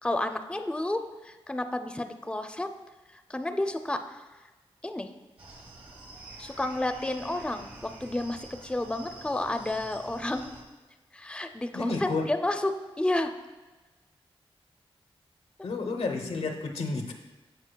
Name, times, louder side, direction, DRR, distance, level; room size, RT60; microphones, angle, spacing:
voice 1, 0.0-2.7 3.1-4.2 4.8-5.1 6.4-10.5 11.1-12.7 13.0-13.3, left 1 dB, 10° left, 7 dB, 0.5 m, -31 dB
sound 1, 5.4-10.6, right 2 dB, 80° right, 1.4 m, -47 dB
voice 2, 11.7-12.3 15.6-17.1, left 3 dB, 90° left, 4 dB, 0.7 m, -31 dB
14.5 x 4.9 x 2.2 m, 1.2 s
cardioid pair, 70°, 10 cm